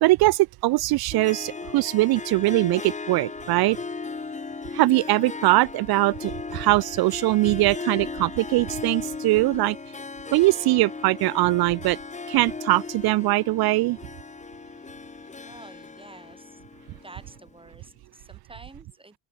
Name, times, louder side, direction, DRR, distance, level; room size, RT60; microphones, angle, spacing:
voice 1, 0.0-3.8 4.7-9.8 10.3-12.0 12.3-14.0, right 19 dB, 65° right, 0.5 m, -21 dB
Harp, 1.1-17.6, left 4 dB, 15° left, 1.6 m, -37 dB
voice 2, 15.4-16.6 17.0-19.2, right 2 dB, 15° right, 5.8 m, -48 dB
open air
cardioid pair, 140°, 41 cm